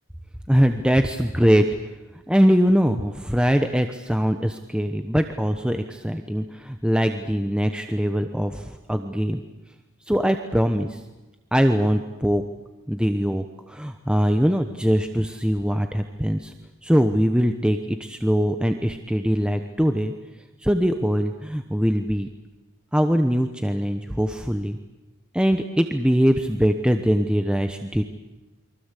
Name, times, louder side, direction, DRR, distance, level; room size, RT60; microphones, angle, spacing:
voice 1, 0.5-1.6 2.3-9.4 10.1-11.0 11.5-12.4 12.9-16.5 16.8-20.1 20.6-22.3 22.9-24.8 25.3-28.0, equal, 5° right, 6 dB, 1.0 m, -22 dB
29.0 x 24.0 x 8.4 m, 1.1 s
head